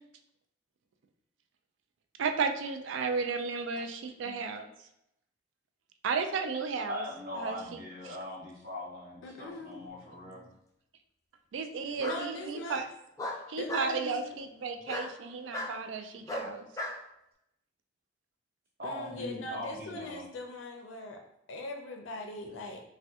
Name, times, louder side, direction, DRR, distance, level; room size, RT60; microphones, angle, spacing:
voice 1, 2.2-4.7 6.0-7.0 7.3-7.6 8.1-8.2 11.5-12.8 13.5-16.7, right 5 dB, 80° right, 6 dB, 0.3 m, -33 dB
voice 2, 6.9-10.4 18.8-20.2, left 1 dB, 50° right, -4 dB, 1.0 m, -40 dB
voice 3, 9.2-9.8 12.0-12.8 13.6-14.3 18.8-21.2 21.5-22.8, left 2 dB, 85° left, 3 dB, 0.4 m, -40 dB
Bark, 9.8-10.5 12.0-12.2 13.2-13.9 14.9-15.1 15.5-15.7 16.3-17.0, left 1 dB, 15° left, 0.3 m, -36 dB
3.4 x 2.1 x 2.7 m, 0.80 s
head